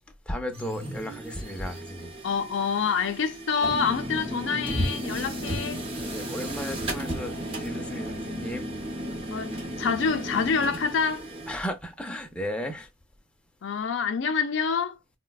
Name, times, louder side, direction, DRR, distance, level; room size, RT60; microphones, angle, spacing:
voice 1, 0.3-2.1 6.0-8.7 11.5-12.9, equal, 5° left, 0.5 m, -35 dB
sound 1, 0.5-11.6, equal, 30° right, 0.7 m, -34 dB
voice 2, 2.2-5.8 9.3-11.2 13.6-15.0, left 5 dB, 60° left, 0.5 m, -27 dB
4.2 x 2.1 x 2.2 m
head